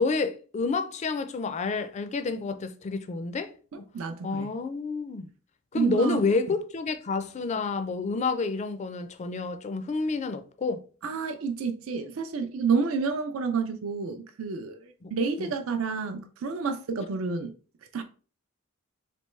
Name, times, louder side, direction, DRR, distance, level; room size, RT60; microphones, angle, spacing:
voice 1, 0.0-3.5 3.8-3.9 4.2-5.3 5.7-10.8 15.0-15.1 15.4-15.5, left 4 dB, 35° left, 0.3 m, -29 dB
voice 2, 3.7-4.5 5.7-6.2 11.0-17.5 17.9-18.0, right 5 dB, 75° right, 0.4 m, -29 dB
3.3 x 2.9 x 3.1 m
head